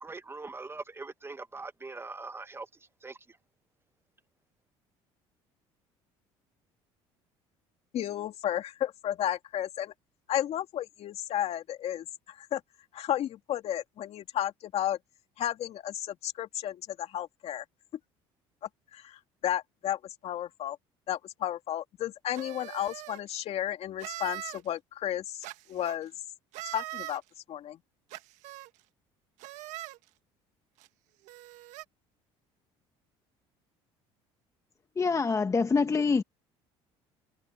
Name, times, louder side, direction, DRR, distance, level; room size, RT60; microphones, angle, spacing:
voice 1, 0.0-3.4, right 3 dB, 20° right, 1.2 m, -42 dB
voice 2, 7.9-9.9 10.3-12.6 12.9-15.0 15.4-17.6 18.9-20.8 21.1-26.1 26.6-27.2 27.5-27.8, left 11 dB, 55° left, 2.5 m, -33 dB
sound 1, 22.3-23.2 24.0-24.6 25.4-26.0 26.5-27.2 28.1-28.7 29.4-30.0 30.8-30.9 31.3-31.8, right 17 dB, 75° right, 1.5 m, -41 dB
voice 3, 35.0-36.2, left 4 dB, 25° left, 1.2 m, -25 dB
supercardioid pair, 90°, 12 cm